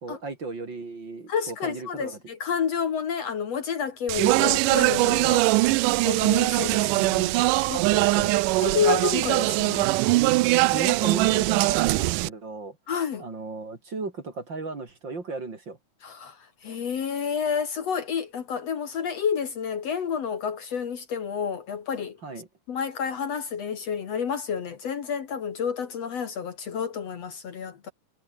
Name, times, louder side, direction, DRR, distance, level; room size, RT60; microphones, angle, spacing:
voice 1, 0.0-2.2 5.2-5.6 7.7-8.4 10.7-12.8 13.2-15.8 22.2-22.5, right 3 dB, 35° right, 3.5 m, -35 dB
voice 2, 1.3-5.4 6.0-7.3 7.7-7.8 8.6-9.9 12.9-13.3 16.0-16.4 16.6-22.2 22.7-27.9, left 7 dB, 55° left, 2.6 m, -29 dB
Speech, 4.1-12.3, right 21 dB, 80° right, 2.1 m, -22 dB
omnidirectional pair, 3.8 m